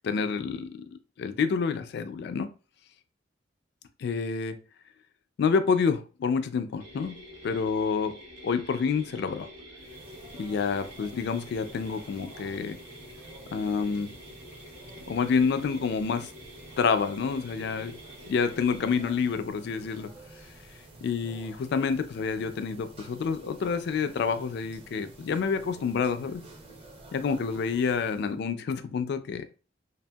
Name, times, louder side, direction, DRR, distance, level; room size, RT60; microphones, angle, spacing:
voice 1, 0.0-0.9 1.2-2.5 4.0-4.6 5.4-7.2 7.4-8.2 8.4-9.5 10.4-12.8 13.5-14.1 15.1-16.3 16.8-17.9 18.3-20.1 21.0-26.4 27.1-29.5, left 5 dB, 60° left, 10 dB, 0.3 m, -28 dB
sound 1, 6.8-19.0, equal, 45° right, 0.9 m, -48 dB
sound 2, 9.8-28.4, right 2 dB, 30° right, 0.6 m, -49 dB
2.7 x 2.6 x 2.2 m, 0.35 s
head